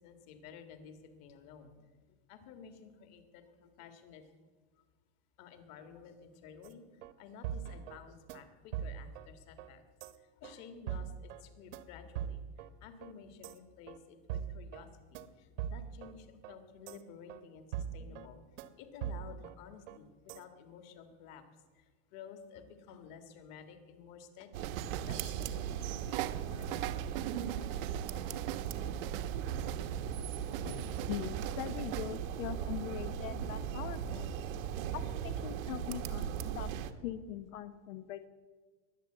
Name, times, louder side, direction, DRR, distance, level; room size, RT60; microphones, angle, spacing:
voice 1, 0.0-1.7 2.3-4.2 5.4-6.8 7.2-9.8 10.4-12.4 12.8-18.4 18.8-21.4 21.7-21.8 22.1-24.7 25.1-27.1 30.6-30.9, left 7 dB, 40° left, 8 dB, 1.8 m, -52 dB
sound 1, 6.6-6.7 7.0-7.1 7.4-8.0 8.3-8.4 8.7-9.3 9.6-9.7 10.0-10.1 10.4-10.5 10.9-11.4 11.7-11.8 12.1-12.7 13.0-13.1 13.4-13.5 13.9-14.0 14.3-14.8 15.1-15.3 15.6-16.1 16.4-16.5 16.9-17.0 17.3-17.4 17.7-18.3 18.6-18.7 19.0-19.5 19.9-20.0 20.3-20.4, right 9 dB, 70° right, 1.2 m, -41 dB
sound 2, 24.5-36.9, right 9 dB, 85° right, 1.3 m, -38 dB
sound 3, 24.6-25.8 26.1-30.1 30.5-32.1, right 15 dB, 45° right, 0.6 m, -42 dB
voice 2, 31.1-34.3 34.9-36.3 36.5-36.7 37.0-38.3, left 11 dB, 90° left, 11 dB, 1.0 m, -42 dB
21.5 x 8.4 x 7.8 m, 1.4 s
supercardioid pair, 170°, 39 cm